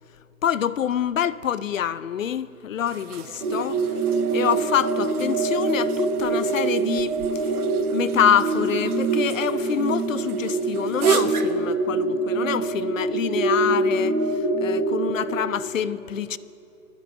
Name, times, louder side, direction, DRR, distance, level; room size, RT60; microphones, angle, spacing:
voice 1, 0.4-3.8 4.3-7.5 7.9-16.4, left 9 dB, 60° left, 0.5 m, -26 dB
sound 1, 2.8-11.7, right 7 dB, 80° right, 1.0 m, -32 dB
sound 2, 3.4-15.3, right 3 dB, 35° right, 1.4 m, -25 dB
12.5 x 9.8 x 5.9 m
hypercardioid pair, 175°, 44 cm